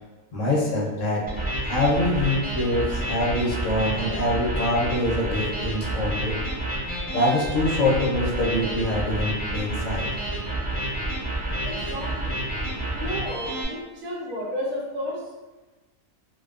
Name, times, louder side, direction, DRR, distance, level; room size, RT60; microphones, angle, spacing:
voice 1, 0.3-1.3 1.7-6.3 7.1-10.1, left 1 dB, 65° left, -4 dB, 0.9 m, -24 dB
sound 1, 1.3-13.6, right 1 dB, 10° right, 0.6 m, -29 dB
voice 2, 11.6-12.5 12.9-15.2, left 1 dB, 75° right, -4 dB, 1.1 m, -32 dB
2.4 x 2.1 x 2.3 m, 1.2 s
omnidirectional pair, 1.5 m